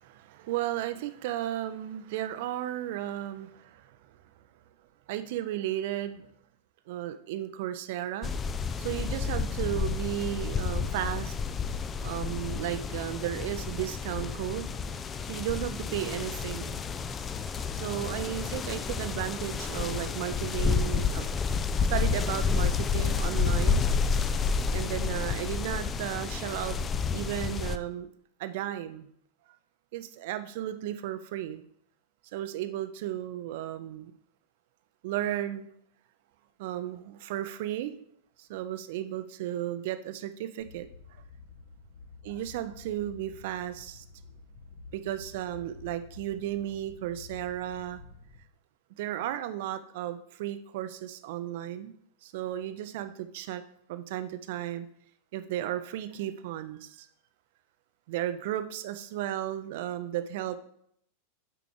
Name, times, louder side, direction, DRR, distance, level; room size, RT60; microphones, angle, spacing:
voice 1, 0.0-4.2 5.1-6.3 6.9-8.3 8.8-11.3 12.0-14.7 15.3-16.8 17.2-21.2 21.9-23.9 24.7-26.8 27.1-28.1 28.4-29.1 29.9-31.6 32.3-34.1 35.0-35.7 36.6-38.0 38.4-40.9 42.2-44.0 44.9-48.0 49.0-51.9 52.2-53.6 53.9-54.9 55.3-57.1 58.1-60.6, right 12 dB, 50° right, 10 dB, 0.5 m, -34 dB
sound 1, 8.2-27.8, left 5 dB, 20° left, 0.4 m, -30 dB
sound 2, 40.6-48.4, left 4 dB, 50° left, 1.3 m, -50 dB
6.8 x 4.7 x 3.8 m, 0.68 s
figure-of-eight pair, 90°, 0 cm